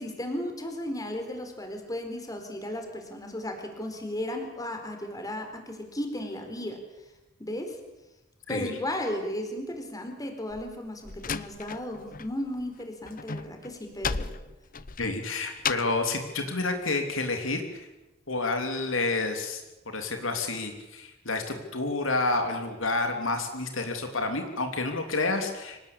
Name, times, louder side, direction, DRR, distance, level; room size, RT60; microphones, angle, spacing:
voice 1, 0.0-6.8 7.4-7.8 8.5-14.3, left 1 dB, 20° left, 4 dB, 4.2 m, -35 dB
Slam, 10.5-12.3 12.6-16.1, left 5 dB, 45° left, 0.9 m, -35 dB
voice 2, 15.0-17.9 18.3-25.8, left 3 dB, 75° left, 5 dB, 3.2 m, -29 dB
25.5 x 19.0 x 8.7 m, 1.0 s
head